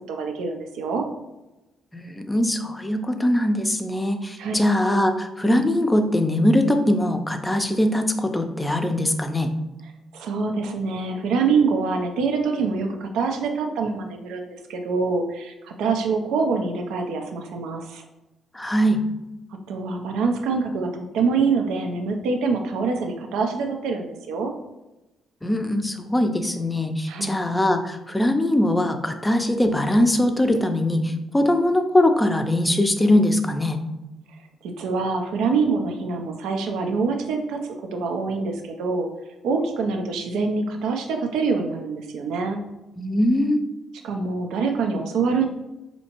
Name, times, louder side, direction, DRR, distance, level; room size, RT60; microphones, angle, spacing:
voice 1, 0.1-1.1 4.4-4.6 10.1-18.0 19.7-24.5 27.1-27.4 34.6-39.1 39.4-42.6 44.0-45.5, right 4 dB, 85° right, 4 dB, 0.4 m, -25 dB
voice 2, 1.9-9.5 18.5-19.0 25.4-33.8 43.0-43.6, left 1 dB, 10° left, 6 dB, 0.4 m, -21 dB
4.2 x 2.8 x 2.9 m, 0.99 s
cardioid pair, 90°, 0 cm